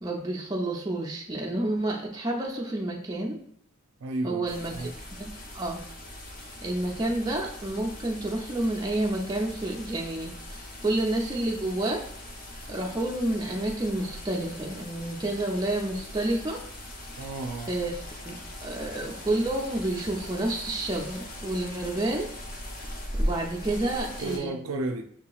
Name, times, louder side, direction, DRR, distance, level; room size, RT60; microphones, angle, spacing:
voice 1, 0.0-3.4 4.2-4.9 5.2-5.8 6.6-10.3 10.8-12.0 12.7-16.6 17.7-18.0 18.3-18.4 18.6-22.3 23.2-24.5, right 1 dB, 20° right, 0.5 m, -29 dB
voice 2, 4.0-4.9 17.2-17.7 24.2-25.0, right 2 dB, 85° right, 0.4 m, -33 dB
sound 1, 4.5-24.4, equal, 40° left, 0.7 m, -39 dB
5.8 x 2.8 x 2.3 m
head